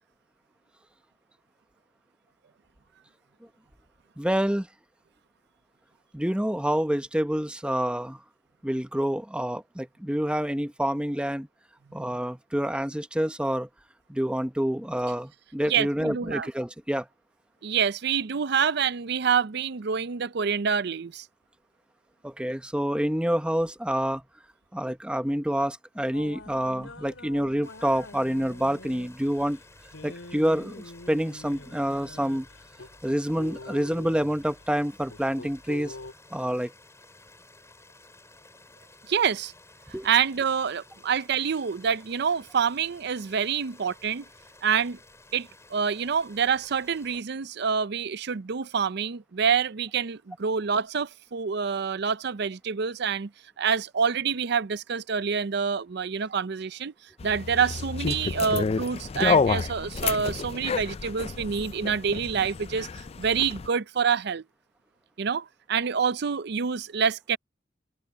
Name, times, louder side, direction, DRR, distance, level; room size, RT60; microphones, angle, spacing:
voice 1, 4.2-4.7 6.1-8.2 8.6-11.5 11.9-13.7 14.1-17.1 22.2-24.2 24.7-29.6 30.0-32.5 33.0-35.9 36.3-36.7 39.9-40.1, equal, 5° right, 0.9 m, -27 dB
voice 2, 15.7-16.5 17.6-21.3 39.1-39.5 40.0-44.2 44.6-45.0 45.3-53.3 53.6-56.9 57.2-64.4 65.2-67.4, right 6 dB, 60° right, 0.5 m, -27 dB
sound 1, 26.1-36.1, left 2 dB, 90° left, 4.0 m, -45 dB
sound 2, 27.6-47.2, left 2 dB, 15° left, 7.4 m, -54 dB
sound 3, 57.2-63.7, left 5 dB, 30° left, 0.4 m, -29 dB
open air
head